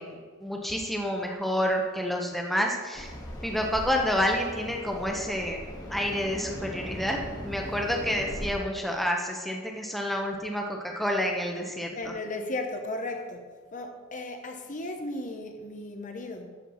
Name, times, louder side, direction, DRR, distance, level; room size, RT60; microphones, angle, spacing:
voice 1, 0.0-3.1 3.4-5.6 5.9-12.1, equal, ahead, 1 dB, 1.0 m, -29 dB
sound 1, 2.9-8.5, equal, 20° left, 1.6 m, -39 dB
voice 2, 12.0-13.4 13.7-16.6, left 2 dB, 40° left, 4 dB, 1.0 m, -35 dB
12.0 x 4.6 x 7.2 m, 1.5 s
head